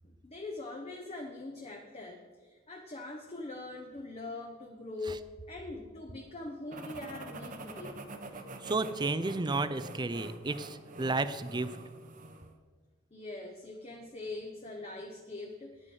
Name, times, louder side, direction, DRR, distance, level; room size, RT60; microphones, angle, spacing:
voice 1, 0.0-8.0 13.1-15.9, left 2 dB, 30° left, 2 dB, 0.9 m, -42 dB
sound 1, 6.7-12.5, right 2 dB, 40° right, 0.9 m, -46 dB
voice 2, 8.6-11.7, right 3 dB, 20° right, 12 dB, 0.5 m, -32 dB
9.8 x 9.2 x 5.4 m, 1.4 s
head